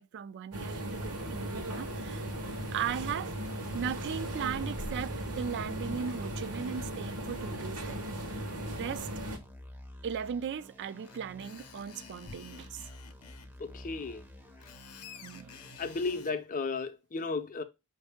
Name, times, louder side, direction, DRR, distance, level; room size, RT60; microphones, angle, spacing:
voice 1, 0.0-2.3 2.7-3.4 3.7-8.5 8.8-9.1 10.0-12.8 15.1-15.5, right 7 dB, 50° right, 0.3 m, -37 dB
sound 1, 0.5-9.4, right 1 dB, 75° right, 1.1 m, -37 dB
sound 2, 0.8-16.2, equal, 10° right, 0.6 m, -51 dB
Screech, 11.0-13.5 14.4-16.4, left 7 dB, 75° left, 0.7 m, -51 dB
voice 2, 13.6-14.2 15.8-17.6, left 4 dB, 35° left, 0.6 m, -34 dB
5.2 x 2.7 x 3.4 m
head